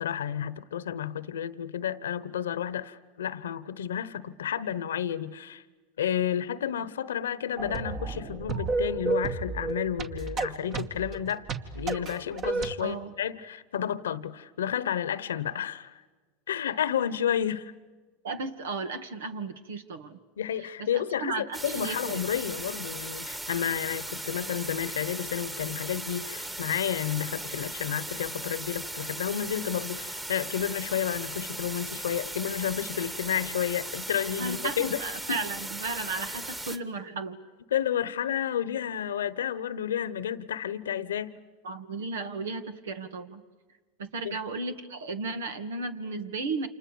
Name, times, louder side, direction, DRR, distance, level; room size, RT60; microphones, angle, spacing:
voice 1, 0.0-5.6 6.0-11.4 11.7-16.0 16.5-17.7 20.4-35.0 35.3-35.4 37.7-41.4 44.2-44.4, left 9 dB, 90° left, 17 dB, 1.1 m, -31 dB
sound 1, 7.6-12.8, right 3 dB, 45° right, 2.4 m, -32 dB
voice 2, 12.8-13.1 18.2-20.2 20.6-22.2 34.4-37.4 41.6-43.4 44.0-46.7, right 3 dB, 85° right, 10 dB, 2.1 m, -35 dB
sound 2, 21.5-36.8, right 1 dB, 15° right, 2.0 m, -37 dB
29.5 x 28.0 x 7.1 m, 1.3 s
hypercardioid pair, 100°, 0 cm